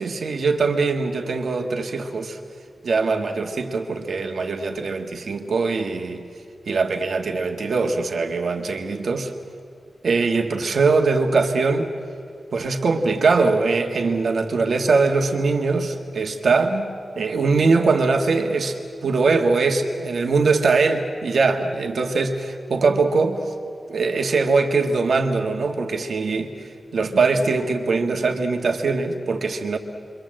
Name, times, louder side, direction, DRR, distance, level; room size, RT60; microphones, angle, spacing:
voice 1, 0.0-2.4 2.8-6.2 6.7-9.3 10.0-11.9 12.5-23.4 23.9-29.8, right 4 dB, 70° right, 4 dB, 1.7 m, -22 dB
28.5 x 24.0 x 7.7 m, 2.4 s
wide cardioid pair, 135°, 0 cm